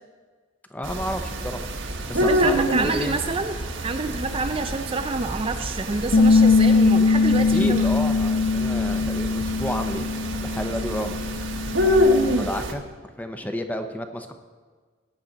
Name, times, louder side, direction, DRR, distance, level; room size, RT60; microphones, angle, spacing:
voice 1, 0.7-1.6 2.1-3.2 7.5-10.1 10.4-11.2 12.4-12.8 13.2-14.3, equal, 10° left, 6 dB, 0.7 m, -31 dB
sound 1, 0.8-12.7, equal, 70° right, 1.2 m, -27 dB
voice 2, 2.2-3.6 3.8-7.8, right 3 dB, 30° right, 7 dB, 0.5 m, -27 dB
Bass guitar, 6.1-12.4, left 4 dB, 80° left, 0.8 m, -21 dB
17.0 x 8.9 x 4.0 m, 1.5 s
head